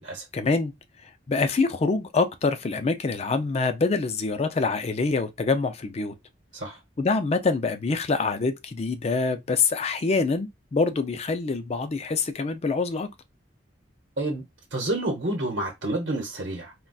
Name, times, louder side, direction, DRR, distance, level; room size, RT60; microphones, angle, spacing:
voice 1, 0.3-0.7 1.3-6.2 7.0-13.1, left 4 dB, 35° left, 0.4 m, -25 dB
voice 2, 14.7-16.7, right 1 dB, 70° right, 0.9 m, -29 dB
3.8 x 2.2 x 2.3 m
head